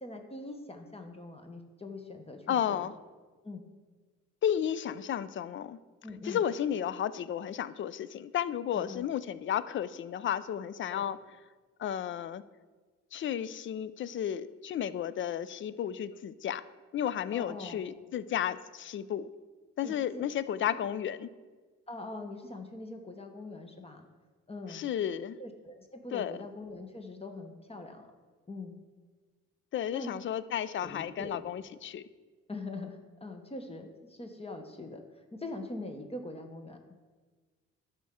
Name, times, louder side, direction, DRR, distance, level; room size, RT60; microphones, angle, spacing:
voice 1, 0.0-2.9 3.4-3.6 6.0-6.4 8.7-9.1 10.9-11.0 17.3-17.8 19.8-20.2 21.9-24.0 24.5-24.8 25.4-28.1 28.5-28.7 29.9-30.1 30.8-31.4 32.5-36.8, left 2 dB, 20° left, 4 dB, 0.8 m, -43 dB
voice 2, 2.5-2.9 4.4-5.8 6.2-11.2 11.8-12.4 13.1-16.6 16.9-19.3 19.8-21.3 24.7-25.4 26.1-26.3 29.7-32.0, left 9 dB, 40° left, 15 dB, 0.4 m, -33 dB
12.0 x 4.3 x 3.6 m, 1.4 s
cardioid pair, 90°, 30 cm